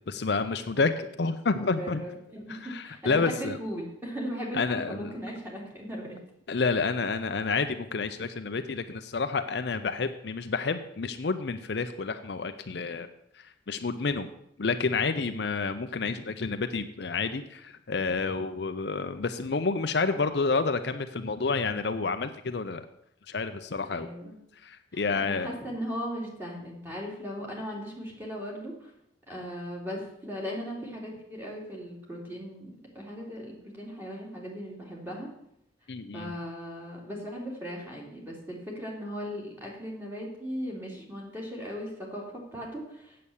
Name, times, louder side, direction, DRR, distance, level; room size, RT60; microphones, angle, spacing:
voice 1, 0.1-2.0 2.5-3.6 4.5-5.1 6.5-13.1 13.3-14.3 14.6-22.9 23.3-24.1 24.6-25.5 35.9-36.3, left 4 dB, 60° left, 8 dB, 0.6 m, -29 dB
voice 2, 1.6-6.2 23.8-24.4 25.1-28.9 29.3-35.3 36.1-43.2, equal, 10° right, -2 dB, 2.6 m, -38 dB
8.4 x 7.6 x 7.0 m, 0.76 s
head